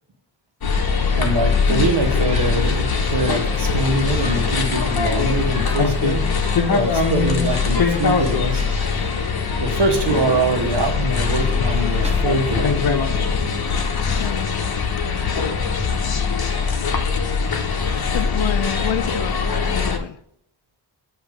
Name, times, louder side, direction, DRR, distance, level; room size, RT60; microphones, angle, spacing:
sound 1, 0.6-20.0, left 5 dB, 55° left, 0.9 m, -21 dB
sound 2, 0.8-12.2, right 2 dB, 15° right, 1.0 m, -38 dB
voice 1, 1.1-6.3 6.7-8.7 9.6-12.9, right 2 dB, 65° right, 1.4 m, -23 dB
voice 2, 12.2-12.6 12.9-13.0 14.2-14.6 18.1-20.2, left 11 dB, 75° left, 0.5 m, -28 dB
8.2 x 3.0 x 4.8 m
wide cardioid pair, 80°, 45 cm